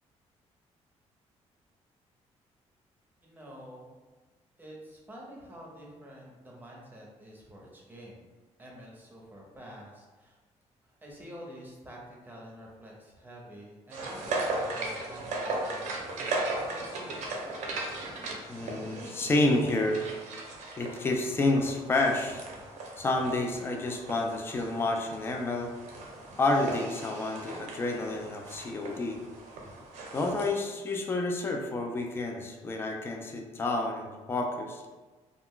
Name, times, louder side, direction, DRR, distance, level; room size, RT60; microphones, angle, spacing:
voice 1, 3.2-3.9 4.6-8.3 8.6-10.4 10.8-16.1 16.4-17.2, equal, 15° right, -3 dB, 0.7 m, -48 dB
sound 1, 13.9-30.5, right 2 dB, 80° right, 0.6 m, -37 dB
voice 2, 18.5-20.0 20.8-22.4 23.0-25.7 26.4-29.2 30.1-34.8, left 2 dB, 20° left, 2 dB, 0.3 m, -29 dB
2.3 x 2.1 x 3.6 m, 1.3 s
cardioid pair, 105°, 12 cm